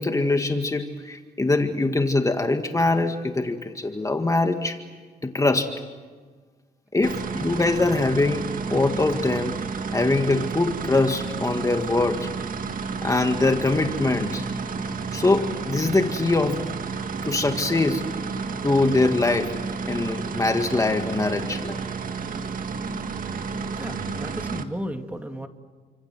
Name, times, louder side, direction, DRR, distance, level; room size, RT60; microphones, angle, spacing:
voice 1, 0.0-4.8 5.2-5.7 6.9-9.5 9.9-12.3 13.0-14.4 15.1-16.6 17.3-18.1 18.6-19.5 19.9-21.8, left 2 dB, 20° left, 5 dB, 1.9 m, -23 dB
sound 1, 7.0-24.6, right 5 dB, 60° right, 2.0 m, -31 dB
voice 2, 23.8-25.5, equal, 10° right, 5 dB, 2.3 m, -33 dB
29.0 x 26.0 x 7.8 m, 1.5 s
cardioid pair, 95°, 16 cm